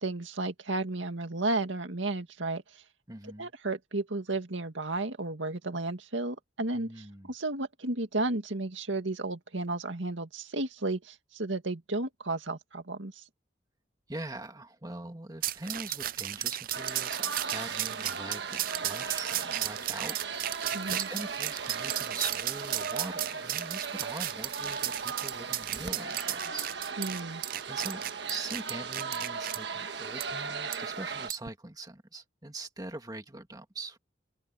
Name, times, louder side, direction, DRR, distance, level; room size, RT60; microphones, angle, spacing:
voice 1, 0.0-2.8 3.4-13.2 20.7-21.1 27.0-27.4, right 2 dB, 90° right, 2.2 m, -33 dB
voice 2, 3.1-3.5 6.7-7.3 14.1-20.2 20.4-26.7 27.7-28.0 28.3-34.0, right 2 dB, 20° right, 2.2 m, -42 dB
sound 1, 15.4-29.6 30.2-30.3 30.7-30.8 31.3-31.5, right 13 dB, 50° right, 0.5 m, -34 dB
sound 2, 16.7-31.3, right 5 dB, 65° right, 1.4 m, -37 dB
open air
head